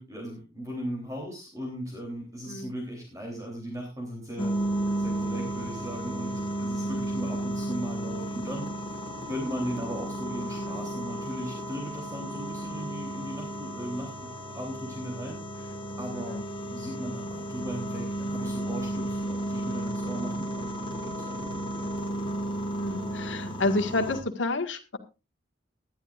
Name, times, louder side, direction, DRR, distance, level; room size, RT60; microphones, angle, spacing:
voice 1, 0.0-4.5 5.0-6.3 6.6-8.7 9.3-21.9, equal, 15° right, 0 dB, 3.4 m, -37 dB
sound 1, 4.4-24.2, right 1 dB, 25° left, 2.1 m, -33 dB
voice 2, 22.8-25.0, left 2 dB, 70° left, 5 dB, 1.8 m, -30 dB
19.5 x 12.0 x 2.5 m, 0.29 s
head